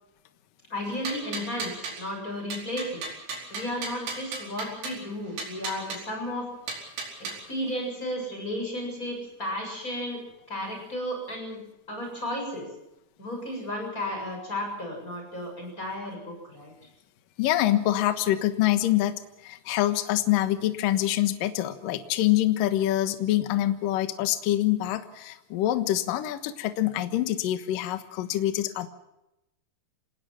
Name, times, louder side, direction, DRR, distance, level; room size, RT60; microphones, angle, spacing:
voice 1, 0.7-3.0 3.5-6.5 7.2-11.6 11.9-12.7 13.2-16.7, left 1 dB, 15° left, 1 dB, 7.5 m, -33 dB
sound 1, 0.8-2.0 2.5-5.0 5.4-6.0 6.7-7.4, right 3 dB, 85° right, 7.3 m, -36 dB
voice 2, 17.4-28.9, left 14 dB, 65° left, 8 dB, 2.3 m, -25 dB
27.0 x 19.5 x 6.0 m, 0.91 s
omnidirectional pair, 5.7 m